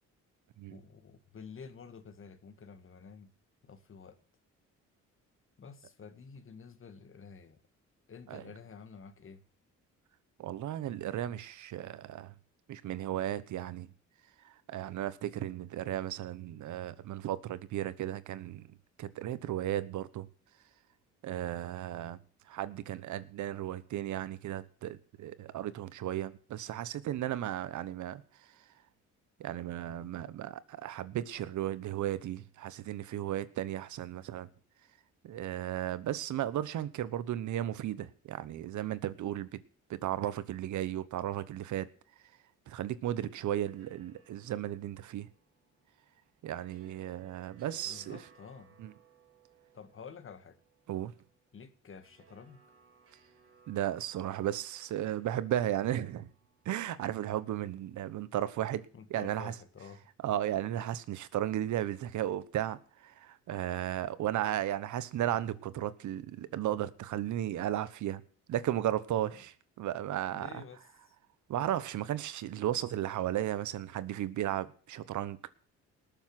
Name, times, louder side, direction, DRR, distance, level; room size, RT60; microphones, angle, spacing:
voice 1, 0.7-3.3 3.6-4.2 5.6-7.6 8.1-9.4 47.9-48.8 49.7-50.6 51.5-52.6 58.9-60.1 70.3-71.2, left 6 dB, 45° left, 1.9 m, -50 dB
voice 2, 10.4-12.3 12.7-13.9 14.4-20.3 21.2-22.2 22.5-28.6 29.4-34.5 35.2-39.5 39.9-41.9 42.7-45.3 46.4-48.2 48.8-48.9 50.9-51.1 53.7-56.3 56.6-58.8 59.1-59.5 60.2-68.2 68.5-70.6 71.5-75.4, right 12 dB, 75° right, 1.2 m, -35 dB
sound 1, 43.2-58.2, right 7 dB, 50° right, 4.8 m, -65 dB
19.5 x 7.2 x 6.1 m
cardioid pair, 90°, 30 cm